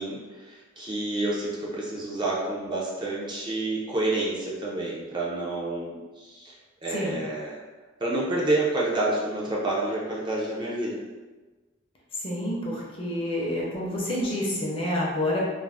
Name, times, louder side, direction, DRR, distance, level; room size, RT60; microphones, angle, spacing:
voice 1, 0.0-6.5 6.8-7.6 8.0-11.0, right 2 dB, 25° right, -5 dB, 0.4 m, -29 dB
voice 2, 12.1-15.4, left 1 dB, 30° left, -4 dB, 0.6 m, -28 dB
2.4 x 2.0 x 3.3 m, 1.3 s
head